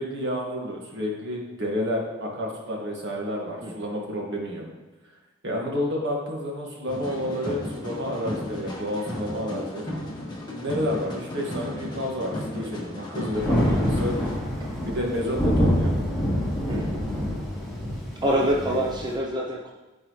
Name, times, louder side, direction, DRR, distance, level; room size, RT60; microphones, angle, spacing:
voice 1, 0.0-4.6 5.4-9.9 10.2-14.2 14.8-15.9 18.5-18.8, equal, 65° right, -1 dB, 1.8 m, -30 dB
sound 1, 6.9-14.4, left 1 dB, 25° left, 1.4 m, -35 dB
Thunder, 13.3-19.1, equal, ahead, 2.8 m, -26 dB
voice 2, 16.7-17.1 18.2-19.7, equal, 20° right, -2 dB, 0.7 m, -26 dB
14.0 x 4.7 x 3.2 m, 1.2 s
head